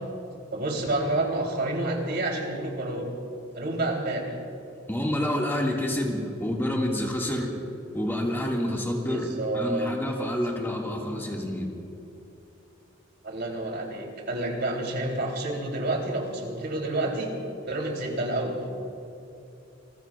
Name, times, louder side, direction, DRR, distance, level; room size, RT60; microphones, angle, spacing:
voice 1, 0.5-3.1 3.5-4.4 9.0-9.9 13.2-17.3 17.6-18.6, right 2 dB, 60° right, 1 dB, 3.2 m, -29 dB
voice 2, 4.9-7.5 7.9-9.3 9.5-11.7, left 1 dB, 10° left, -2 dB, 1.9 m, -28 dB
28.0 x 21.5 x 2.4 m, 2.8 s
head